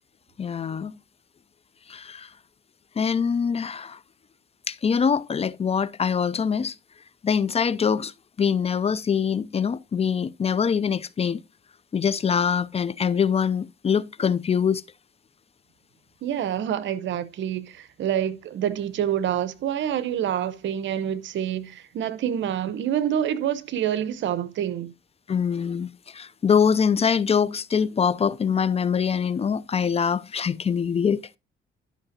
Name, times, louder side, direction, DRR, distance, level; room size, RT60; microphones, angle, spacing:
voice 1, 0.4-0.9 1.9-2.3 3.0-4.0 4.7-6.7 7.2-8.1 8.4-11.4 11.9-14.8 25.3-31.2, left 7 dB, 30° left, 0.4 m, -24 dB
voice 2, 16.2-24.9, right 10 dB, 70° right, 0.8 m, -27 dB
11.0 x 5.8 x 2.7 m
cardioid pair, 90°, 20 cm